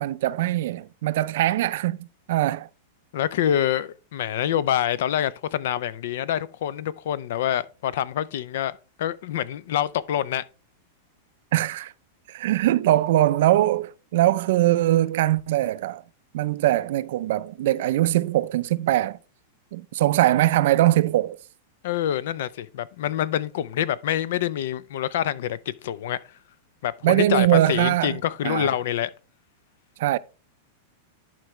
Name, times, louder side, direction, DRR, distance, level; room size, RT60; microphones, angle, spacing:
voice 1, 0.0-2.7 11.5-11.9 12.3-16.0 16.3-19.2 19.7-21.4 27.0-28.2 28.4-28.7 30.0-30.2, right 14 dB, 65° right, 0.4 m, -22 dB
voice 2, 3.1-10.4 21.8-26.2 26.8-29.1, left 11 dB, 65° left, 0.5 m, -26 dB
11.5 x 4.6 x 3.1 m
supercardioid pair, 155°, 0 cm